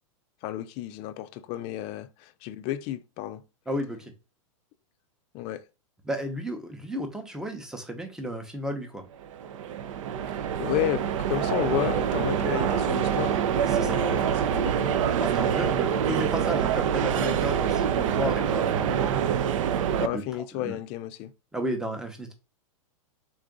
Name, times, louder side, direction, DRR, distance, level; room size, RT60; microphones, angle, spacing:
voice 1, 0.4-3.4 5.3-5.6 10.6-13.4 13.7-14.9 20.0-21.3, left 13 dB, 35° left, 0.4 m, -32 dB
voice 2, 3.7-4.1 6.0-9.0 13.6-14.0 15.2-19.3 20.1-20.2 20.5-20.8 21.5-22.3, equal, 5° right, 0.7 m, -33 dB
sound 1, 9.2-20.1, right 8 dB, 65° right, 0.5 m, -26 dB
3.8 x 2.4 x 3.7 m
hypercardioid pair, 125°, 17 cm